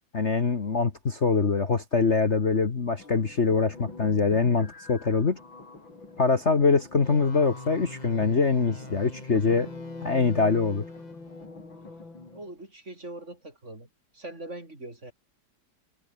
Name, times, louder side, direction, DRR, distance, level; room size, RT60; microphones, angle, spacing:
voice 1, 0.1-5.4 6.2-9.7 10.0-10.8, left 4 dB, 35° left, 1.8 m, -24 dB
sound 1, 3.0-12.5, left 3 dB, 80° left, 6.4 m, -45 dB
sound 2, 7.0-11.5, left 2 dB, 20° left, 2.5 m, -44 dB
voice 2, 12.3-13.9 14.1-15.1, right 2 dB, 35° right, 5.9 m, -41 dB
omnidirectional pair, 2.1 m